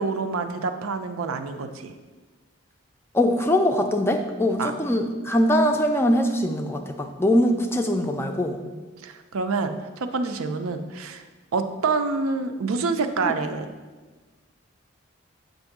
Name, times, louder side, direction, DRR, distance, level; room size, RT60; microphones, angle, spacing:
voice 1, 0.0-1.9 4.6-4.7 8.6-11.2 11.5-13.7, right 4 dB, 90° right, 7 dB, 0.5 m, -27 dB
voice 2, 3.1-8.6 13.2-13.3, left 1 dB, 10° left, 5 dB, 0.3 m, -22 dB
7.6 x 2.7 x 5.8 m, 1.3 s
head